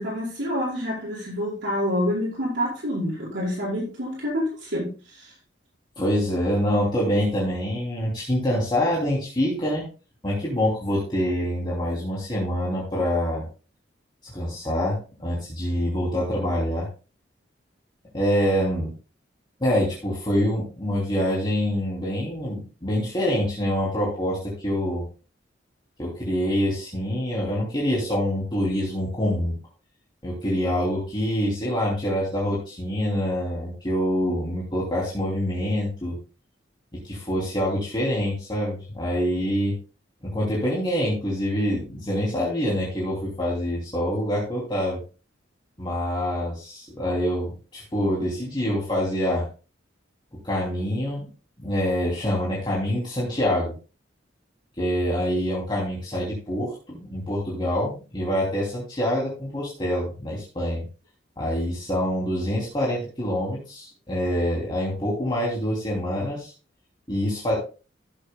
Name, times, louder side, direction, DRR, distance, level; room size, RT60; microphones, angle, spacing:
voice 1, 0.0-5.3, equal, 70° right, -6 dB, 5.3 m, -27 dB
voice 2, 6.0-9.9 10.2-13.4 14.3-16.9 18.1-18.9 19.6-25.0 26.0-29.6 30.2-36.2 37.0-39.8 40.2-45.0 45.8-49.4 50.4-51.3 51.6-53.7 54.8-60.9 61.4-66.5 67.1-67.5, equal, 25° left, -5 dB, 2.9 m, -25 dB
15.5 x 8.1 x 2.2 m, 0.35 s
head